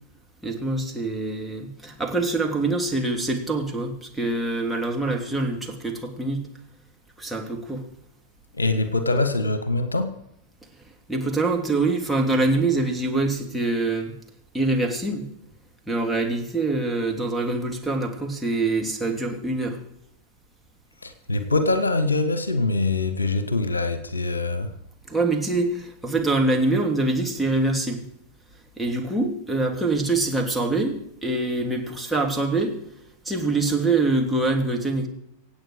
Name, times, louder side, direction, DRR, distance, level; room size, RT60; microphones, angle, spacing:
voice 1, 0.4-6.5 7.2-7.9 11.1-14.1 14.5-15.3 15.9-19.8 25.1-28.1 28.8-32.7 33.2-35.1, right 2 dB, ahead, 3.1 m, -24 dB
voice 2, 8.5-10.1 21.0-24.7, left 2 dB, 80° left, 1.5 m, -24 dB
25.5 x 8.8 x 4.9 m
figure-of-eight pair, 90°, 0 cm